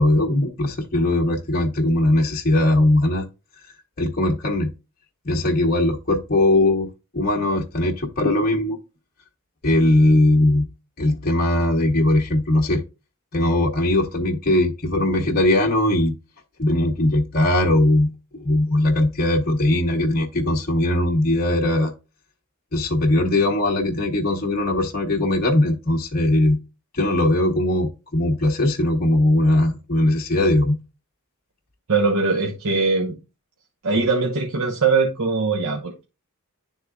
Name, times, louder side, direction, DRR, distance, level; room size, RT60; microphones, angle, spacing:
voice 1, 0.0-3.2 4.0-4.7 5.2-6.9 7.1-8.8 9.6-10.7 11.0-12.8 13.3-16.1 16.6-18.1 18.3-21.9 22.7-26.6 26.9-30.8, left 1 dB, 45° left, 0.9 m, -20 dB
voice 2, 31.9-33.2 33.8-36.0, right 4 dB, 70° right, 1.0 m, -21 dB
11.0 x 3.7 x 2.3 m
head